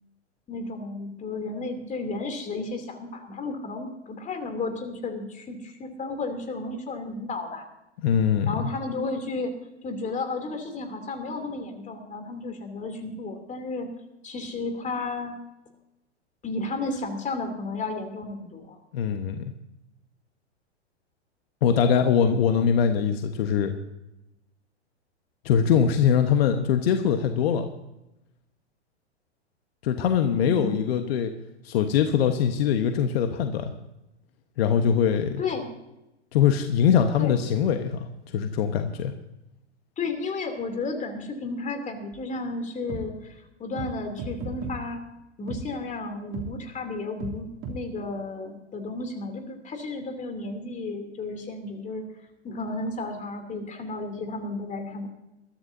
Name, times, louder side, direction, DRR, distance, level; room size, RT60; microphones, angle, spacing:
voice 1, 0.5-7.6 8.5-9.5 9.8-13.9 14.2-15.4 16.4-18.8 30.3-30.8 35.4-35.7 37.2-37.4 40.0-45.0 45.4-52.0 52.4-55.1, left 3 dB, 20° left, 5 dB, 3.0 m, -33 dB
voice 2, 8.0-8.5 18.9-19.5 21.6-23.7 25.4-27.7 29.8-31.3 31.6-33.7 34.6-35.4 36.3-39.1, left 8 dB, 60° left, 6 dB, 1.3 m, -22 dB
sound 1, 42.1-42.2 42.9-43.0 43.8-43.9 44.2-44.7 45.5-45.6 46.3-46.5 47.2-47.3 47.6-47.8, right 4 dB, 35° right, 3.1 m, -34 dB
22.0 x 13.5 x 2.7 m, 0.93 s
hypercardioid pair, 105°, 35 cm